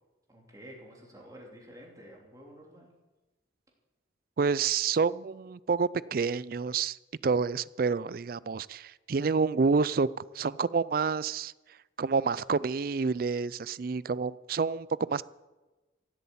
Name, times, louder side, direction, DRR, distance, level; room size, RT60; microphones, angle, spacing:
voice 1, 0.3-2.9, equal, 20° right, -2 dB, 3.3 m, -50 dB
voice 2, 4.4-7.0 7.2-10.1 10.3-11.5 12.0-15.2, right 5 dB, 50° right, 20 dB, 0.4 m, -28 dB
16.0 x 8.4 x 8.4 m, 1.1 s
head